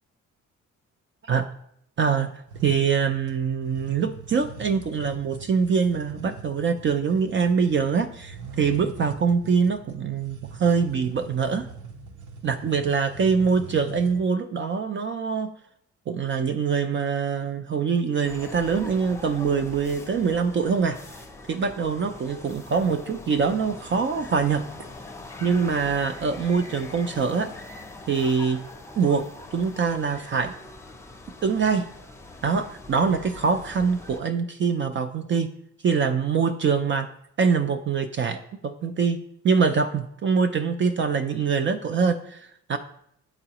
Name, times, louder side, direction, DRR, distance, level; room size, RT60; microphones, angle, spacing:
voice 1, 2.0-2.3 2.6-11.7 12.4-15.5 16.1-21.0 21.5-24.7 25.4-27.5 28.1-28.7 29.0-29.2 29.5-30.5 31.4-31.8 32.4-35.5 35.8-37.1 37.4-39.2 39.4-42.8, right 5 dB, 40° right, 8 dB, 0.4 m, -24 dB
sound 1, 2.5-14.2, right 4 dB, 80° right, 0.8 m, -42 dB
sound 2, 18.3-34.2, left 2 dB, 10° left, 0.6 m, -42 dB
9.7 x 3.9 x 2.9 m, 0.71 s
cardioid pair, 90°, 30 cm